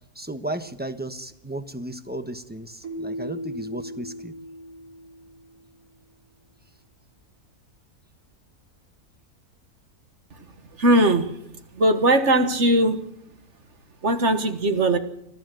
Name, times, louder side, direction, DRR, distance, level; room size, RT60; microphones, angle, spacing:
voice 1, 0.1-4.3, right 1 dB, 5° right, 9 dB, 1.0 m, -34 dB
Keyboard (musical), 2.8-5.7, equal, 70° right, 4.8 m, -37 dB
voice 2, 10.8-11.3 11.8-13.0 14.0-15.0, right 1 dB, 50° right, 9 dB, 1.8 m, -19 dB
30.0 x 12.5 x 7.8 m, 0.78 s
omnidirectional pair, 1.6 m